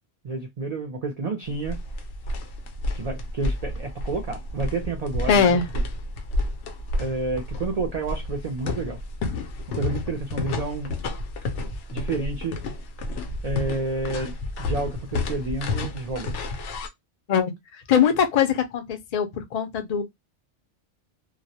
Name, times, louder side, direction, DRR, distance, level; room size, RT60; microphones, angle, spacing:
voice 1, 0.2-1.8 2.9-5.6 7.0-9.0 9.7-10.9 11.9-12.6 13.4-16.4, right 3 dB, 55° right, 0.4 m, -30 dB
sound 1, 1.4-16.9, left 2 dB, 80° left, 0.9 m, -31 dB
voice 2, 5.3-5.7 17.3-20.0, left 7 dB, 50° left, 0.5 m, -22 dB
2.3 x 2.0 x 2.6 m
omnidirectional pair, 1.2 m